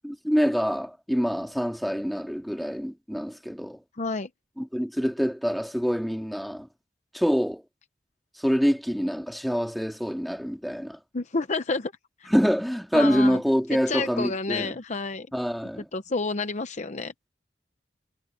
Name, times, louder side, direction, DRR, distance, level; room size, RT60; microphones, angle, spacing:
voice 1, 0.0-3.8 4.6-6.7 7.1-7.6 8.4-11.0 12.3-14.7 15.3-15.8, equal, ahead, 2.4 m, -26 dB
voice 2, 4.0-4.3 11.1-11.9 12.2-12.3 12.9-13.4 13.9-15.3 15.8-17.1, left 3 dB, 40° left, 0.7 m, -29 dB
head